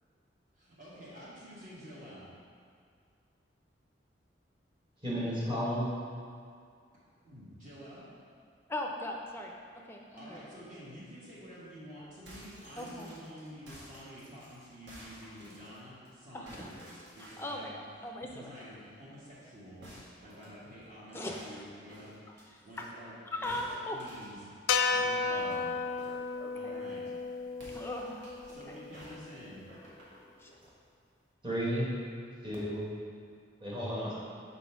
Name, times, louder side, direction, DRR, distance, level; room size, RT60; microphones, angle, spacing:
voice 1, 0.6-2.3 7.2-8.1 10.1-17.8 18.2-24.5 24.9-25.7 26.2-27.1 28.4-29.6, equal, 45° right, -9 dB, 1.3 m, -49 dB
voice 2, 5.0-5.9 31.4-31.9 32.4-32.9 33.6-34.1, equal, 25° right, -7 dB, 1.4 m, -32 dB
voice 3, 8.7-9.5 9.9-10.4 12.8-13.1 16.3-16.7 17.2-18.5 21.1-21.6 22.8-22.9 23.3-24.0 24.8-24.9 25.3-25.7 26.1-26.8 27.7-28.5 30.4-30.5, left 1 dB, 10° left, 0 dB, 0.4 m, -39 dB
sound 1, 12.2-16.1 16.5-17.6 19.8-22.8 23.4-26.3 27.5-28.5 28.9-30.7, equal, 70° right, 1.5 m, -53 dB
sound 2, 24.7-29.0, left 4 dB, 90° left, 0.4 m, -33 dB
4.2 x 4.2 x 5.7 m, 2.2 s
head